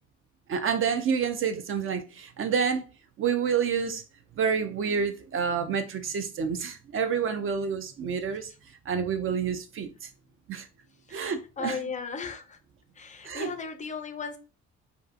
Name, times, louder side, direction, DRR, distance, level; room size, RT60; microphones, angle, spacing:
voice 1, 0.5-2.8 3.2-4.0 4.4-8.5 8.9-10.1 10.5-10.7 11.1-11.8 13.2-13.5, right 6 dB, 45° right, 0.4 m, -28 dB
voice 2, 11.1-12.6 13.0-14.4, left 5 dB, 25° left, 0.4 m, -36 dB
2.6 x 2.4 x 2.4 m
cardioid pair, 90°, 30 cm